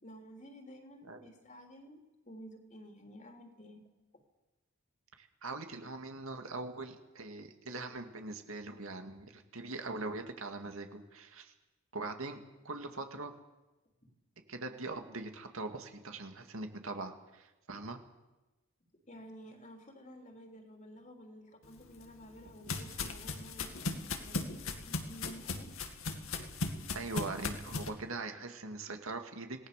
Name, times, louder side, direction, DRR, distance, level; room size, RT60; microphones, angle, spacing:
voice 1, 0.0-2.0 2.3-3.8 14.0-14.1 19.1-25.7, equal, 35° left, 3 dB, 3.4 m, -52 dB
voice 2, 5.2-11.5 11.9-12.4 12.6-13.3 14.5-18.0 26.9-29.7, right 3 dB, 75° right, 5 dB, 2.4 m, -42 dB
sound 1, 21.8-27.9, left 3 dB, 75° left, 2.3 m, -38 dB
27.0 x 19.0 x 6.8 m, 1.1 s
head